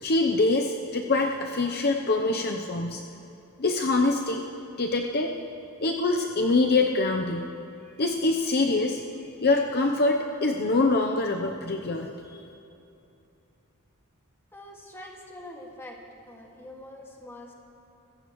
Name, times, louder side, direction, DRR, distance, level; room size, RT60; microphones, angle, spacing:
voice 1, 0.0-3.0 3.6-4.4 4.8-5.3 5.8-7.5 8.0-9.0 9.4-12.4, left 3 dB, 45° left, 2 dB, 0.7 m, -24 dB
voice 2, 14.5-16.0 16.3-17.5, left 1 dB, 10° left, -1 dB, 2.0 m, -44 dB
25.0 x 14.5 x 3.1 m, 2.8 s
head